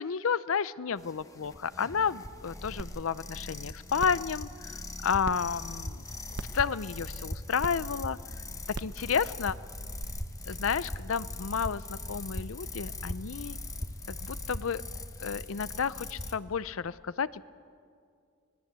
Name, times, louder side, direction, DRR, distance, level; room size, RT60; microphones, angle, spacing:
voice 1, 0.0-6.0 6.5-8.2 8.8-9.6 10.5-13.6 14.1-14.8 15.2-17.5, left 6 dB, 85° left, 17 dB, 0.6 m, -31 dB
sound 1, 1.0-16.3, left 2 dB, 15° left, 1.1 m, -40 dB
sound 2, 2.8-2.9 3.4-3.5 4.0-4.2 5.2-5.3 6.3-6.6 7.6-7.7 8.7-9.0 10.0-10.1, right 2 dB, 60° right, 0.9 m, -37 dB
25.0 x 20.5 x 8.1 m, 2.3 s
head